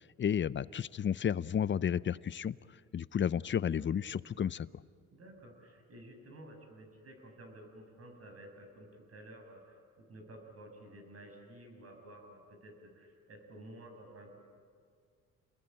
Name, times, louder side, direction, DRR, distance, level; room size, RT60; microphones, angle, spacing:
voice 1, 0.2-2.6 2.9-4.7, left 8 dB, 40° left, 18 dB, 0.6 m, -32 dB
voice 2, 5.1-14.4, right 1 dB, 50° right, 4 dB, 6.2 m, -52 dB
29.0 x 20.5 x 8.9 m, 2.1 s
cardioid pair, 90°, 30 cm